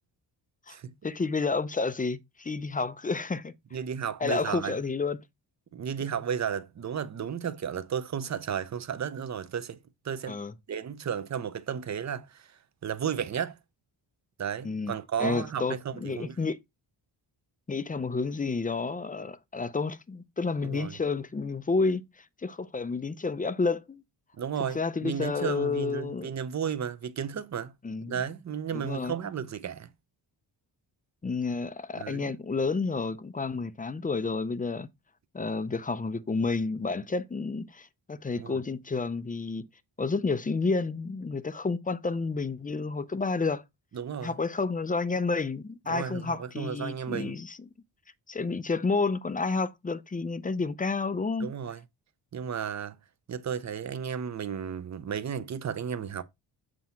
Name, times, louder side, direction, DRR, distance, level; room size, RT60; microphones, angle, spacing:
voice 1, 1.0-3.5 4.2-5.2 10.3-10.5 14.6-14.9 15.2-16.6 17.7-24.0 24.7-26.3 27.8-28.2 28.7-29.2 31.2-34.9 35.3-39.7 40.0-43.6 44.2-47.7 48.3-51.5, left 4 dB, 20° left, 0.5 m, -30 dB
voice 2, 3.7-4.8 5.7-10.4 10.7-13.6 14.4-16.4 20.6-21.0 24.4-27.7 28.0-29.9 32.0-32.3 38.4-38.6 43.9-44.4 45.9-47.4 51.4-51.8 52.3-53.0 53.3-56.2, right 8 dB, 35° right, 0.7 m, -33 dB
7.5 x 2.8 x 5.7 m
cardioid pair, 95°, 46 cm